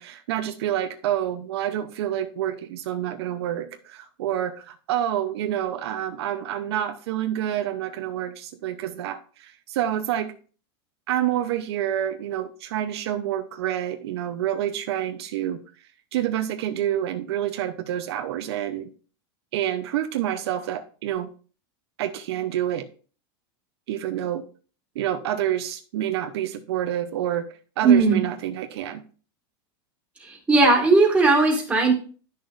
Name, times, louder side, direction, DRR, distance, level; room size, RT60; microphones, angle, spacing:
voice 1, 0.0-10.3 11.1-15.6 16.1-18.9 19.5-21.3 22.0-22.9 23.9-24.4 24.9-29.0, right 11 dB, 75° right, 7 dB, 0.8 m, -28 dB
voice 2, 27.8-28.3 30.2-31.9, right 3 dB, 10° right, 0 dB, 2.2 m, -18 dB
11.0 x 6.4 x 2.6 m, 0.39 s
supercardioid pair, 150°, 14 cm